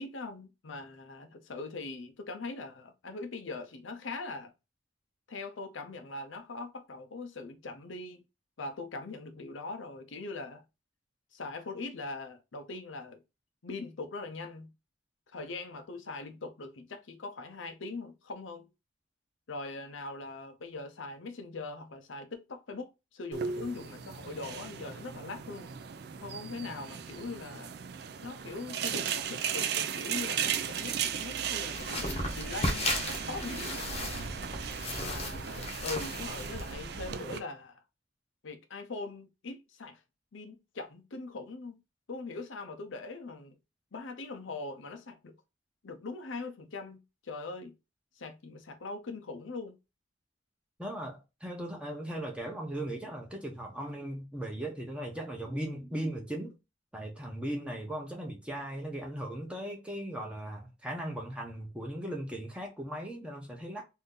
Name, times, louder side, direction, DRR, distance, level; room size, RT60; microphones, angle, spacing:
voice 1, 0.0-4.5 5.3-8.2 8.6-10.6 11.3-13.2 13.6-14.7 15.3-18.7 19.5-25.7 26.2-27.7 28.2-33.9 35.0-37.8 38.4-40.0 40.3-41.8 42.1-43.6 43.9-45.3 45.8-47.7 48.2-49.8, left 3 dB, 85° left, 0.7 m, -41 dB
sound 1, 23.3-37.4, right 8 dB, 55° right, 0.3 m, -36 dB
sound 2, 31.7-36.7, left 1 dB, 30° left, 0.7 m, -35 dB
voice 2, 50.8-56.5 56.9-63.8, right 1 dB, 5° right, 0.7 m, -38 dB
2.7 x 2.6 x 3.6 m
head